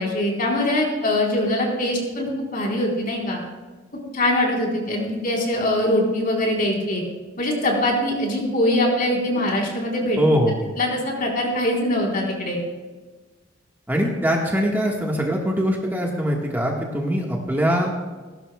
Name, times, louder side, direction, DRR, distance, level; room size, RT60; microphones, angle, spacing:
voice 1, 0.0-3.4 4.1-7.0 7.4-10.2 10.8-12.6, left 1 dB, 50° left, -1 dB, 4.0 m, -22 dB
voice 2, 10.2-10.5 13.9-17.9, equal, 10° right, -1 dB, 1.5 m, -22 dB
19.0 x 16.5 x 2.3 m, 1.3 s
head